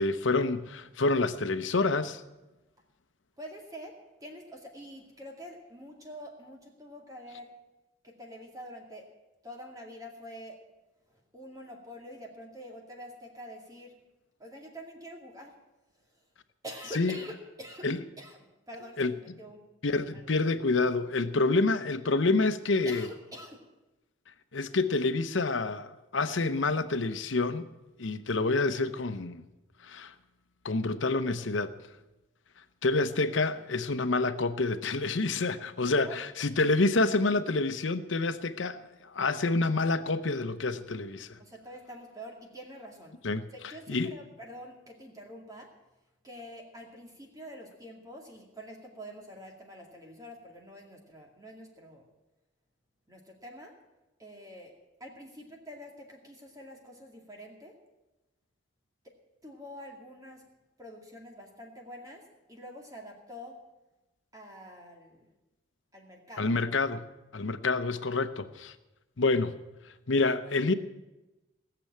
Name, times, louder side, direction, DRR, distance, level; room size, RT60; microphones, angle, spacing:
voice 1, 0.0-2.2 17.0-17.1 17.8-18.0 19.0-19.1 19.8-23.1 24.5-27.6 28.0-29.4 29.8-30.1 30.6-31.7 32.8-41.4 43.2-43.5 43.9-44.2 66.4-68.7 69.2-69.6 70.1-70.7, left 3 dB, 75° left, 0.8 m, -28 dB
voice 2, 3.4-7.5 8.0-9.1 9.4-10.6 11.1-14.0 14.4-15.6 16.0-16.2 16.6-17.9 18.2-19.6 19.9-20.4 22.8-23.6 36.0-36.2 41.4-43.2 43.5-45.7 46.2-52.1 53.1-53.7 54.2-54.7 55.0-57.8 59.4-60.5 60.8-63.6 64.3-65.3 65.9-66.5, equal, 20° right, 2.2 m, -46 dB
18.0 x 6.9 x 8.6 m
head